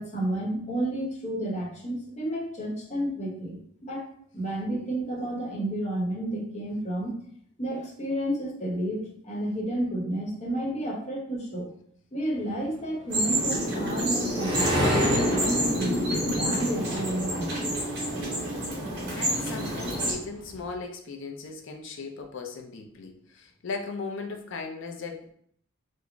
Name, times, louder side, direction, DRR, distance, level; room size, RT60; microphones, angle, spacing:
voice 1, 0.0-3.6 3.9-4.1 4.3-7.2 7.6-11.7 12.1-17.7, right 1 dB, 35° left, -2 dB, 0.9 m, -31 dB
sound 1, 12.9-18.6 19.0-20.7, equal, 20° right, 0.8 m, -31 dB
sound 2, 13.1-20.1, equal, 55° right, 1.4 m, -28 dB
voice 2, 18.9-25.3, left 4 dB, 60° left, 3 dB, 0.5 m, -37 dB
3.8 x 2.0 x 3.3 m, 0.65 s
head